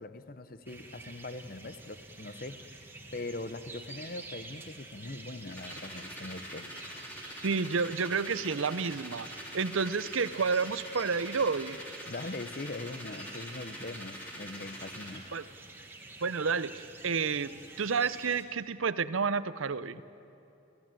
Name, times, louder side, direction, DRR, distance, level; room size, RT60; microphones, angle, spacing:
voice 1, 0.0-2.8 3.1-6.7 12.1-15.3 20.0-20.1, left 2 dB, 45° left, 12 dB, 0.8 m, -41 dB
sound 1, 0.7-18.4, right 2 dB, 10° right, 1.7 m, -49 dB
sound 2, 5.5-15.2, equal, 10° left, 3.2 m, -45 dB
voice 2, 7.4-9.3 9.5-11.8 15.3-15.4 16.2-20.0, right 5 dB, 70° right, 15 dB, 0.7 m, -30 dB
30.0 x 15.5 x 9.0 m, 2.9 s
head